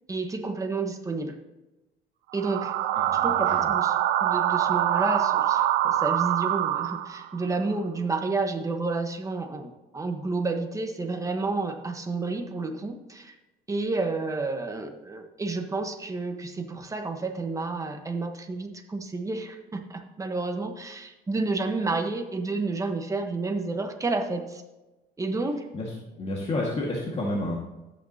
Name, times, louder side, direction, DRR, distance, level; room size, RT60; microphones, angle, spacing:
voice 1, 0.1-1.4 2.3-2.7 3.1-4.0 4.2-13.3 13.7-24.6 25.2-25.6, right 3 dB, 20° right, 5 dB, 1.3 m, -30 dB
sound 1, 2.3-7.4, right 12 dB, 85° right, 0.6 m, -24 dB
voice 2, 2.9-3.7 25.7-27.5, left 1 dB, 35° left, -3 dB, 2.0 m, -31 dB
12.5 x 8.8 x 2.9 m, 1.0 s
cardioid pair, 110°, 17 cm